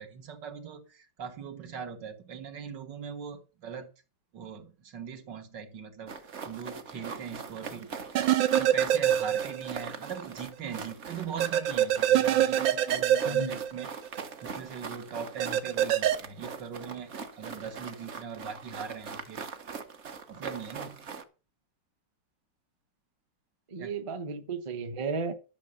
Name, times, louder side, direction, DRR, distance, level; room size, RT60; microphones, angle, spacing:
voice 1, 0.0-3.9 4.3-6.2 6.5-7.9 8.2-13.9 14.4-19.5 20.3-21.1 23.8-23.9, right 7 dB, 70° right, 2.2 m, -41 dB
sound 1, 6.1-21.2, right 5 dB, 45° right, 1.2 m, -41 dB
sound 2, 8.2-9.8 10.2-10.3 11.4-14.2 15.4-16.2, right 11 dB, 90° right, 1.6 m, -25 dB
voice 2, 13.2-13.6 23.7-25.3, right 4 dB, 25° right, 0.8 m, -34 dB
12.0 x 6.0 x 6.9 m
omnidirectional pair, 2.0 m